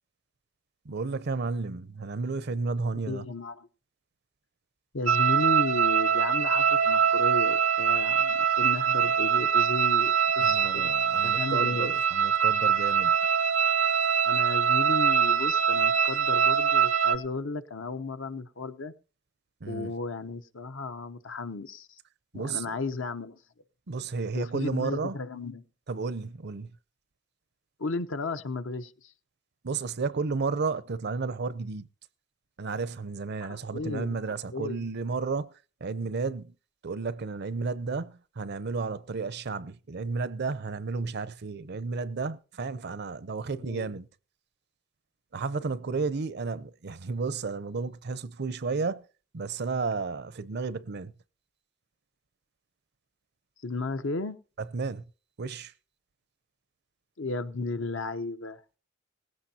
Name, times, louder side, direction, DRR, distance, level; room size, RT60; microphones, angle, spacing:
voice 1, 0.9-3.2 10.4-13.2 19.6-19.9 22.3-22.7 23.9-25.2 25.9-26.7 29.6-31.9 32.6-35.5 35.8-36.5 36.8-44.1 45.3-49.0 49.3-51.1 54.7-55.0 55.4-55.7, right 4 dB, 55° right, 0.6 m, -32 dB
voice 2, 3.1-3.7 4.9-10.9 11.2-12.0 14.2-18.9 19.7-21.9 22.3-23.4 24.3-25.6 27.8-29.1 33.4-34.2 34.5-34.9 43.5-44.0 53.6-54.4 57.2-58.6, left 3 dB, 70° left, 0.9 m, -34 dB
sound 1, 5.1-17.2, right 7 dB, 80° right, 1.0 m, -23 dB
18.0 x 16.0 x 2.8 m
head